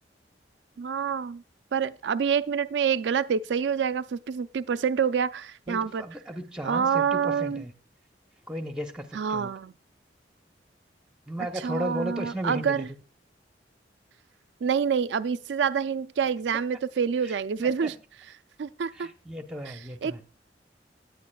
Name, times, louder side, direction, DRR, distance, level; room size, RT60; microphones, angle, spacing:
voice 1, 0.8-1.4 1.7-6.0 6.6-7.6 9.1-9.7 11.6-12.9 14.6-17.9 18.6-19.1 20.0-20.2, right 7 dB, 75° right, 0.4 m, -27 dB
voice 2, 5.7-7.7 8.5-9.5 11.3-12.9 17.2-17.9 18.9-20.2, equal, 5° right, 0.9 m, -35 dB
15.5 x 9.5 x 2.3 m
head